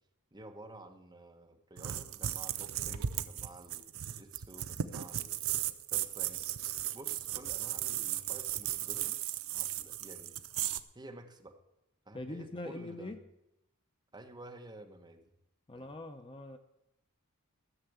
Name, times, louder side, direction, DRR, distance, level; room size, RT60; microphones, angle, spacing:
voice 1, 0.3-5.5 5.9-6.5 6.9-9.2 9.5-10.4 10.9-11.6 12.1-13.1 14.1-15.3 15.7-15.8, right 1 dB, 20° right, 3 dB, 1.2 m, -51 dB
sound 1, 1.8-10.8, right 11 dB, 70° right, 0.6 m, -36 dB
voice 2, 12.1-13.2 15.7-16.6, left 2 dB, 25° left, 7 dB, 0.7 m, -42 dB
14.0 x 6.7 x 8.1 m, 0.87 s
head